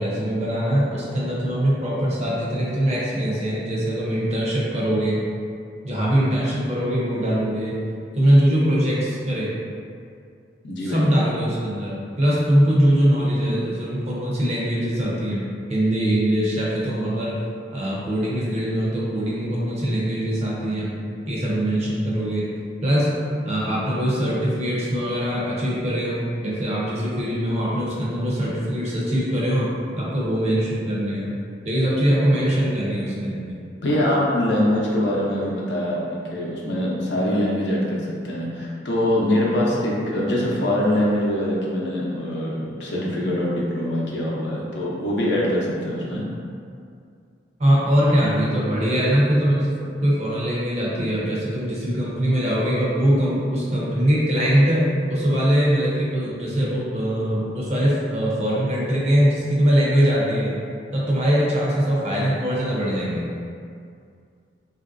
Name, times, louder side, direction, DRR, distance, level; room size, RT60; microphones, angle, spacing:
voice 1, 0.0-5.2 5.8-7.8 8.2-9.5 10.8-15.4 15.7-17.4 17.7-21.0 21.3-22.5 22.8-23.1 23.4-29.7 30.0-31.4 31.6-33.6 47.6-49.7 50.0-60.5 60.9-63.2, equal, 40° right, -6 dB, 0.6 m, -22 dB
voice 2, 10.6-11.1 33.8-46.3 51.0-51.1, left 1 dB, 80° left, -4 dB, 0.6 m, -23 dB
3.0 x 2.5 x 2.5 m, 2.4 s
head